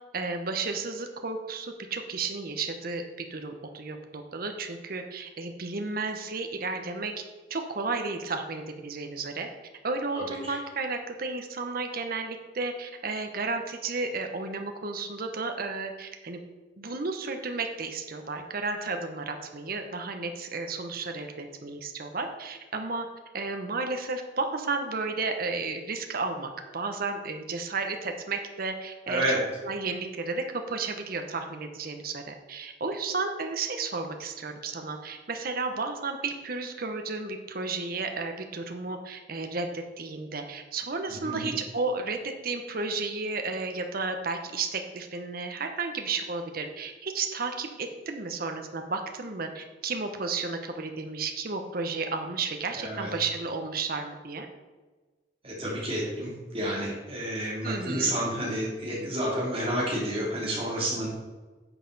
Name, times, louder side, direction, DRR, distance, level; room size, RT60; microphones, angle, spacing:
voice 1, 0.1-7.1 7.5-9.5 9.8-16.4 16.8-23.1 23.3-54.5 57.6-58.2, right 3 dB, 55° right, 5 dB, 1.0 m, -33 dB
voice 2, 10.1-10.6 29.1-29.4 41.0-41.5 52.7-53.1 55.4-61.1, right 1 dB, 35° right, -5 dB, 3.1 m, -30 dB
10.0 x 6.5 x 4.1 m, 1.3 s
head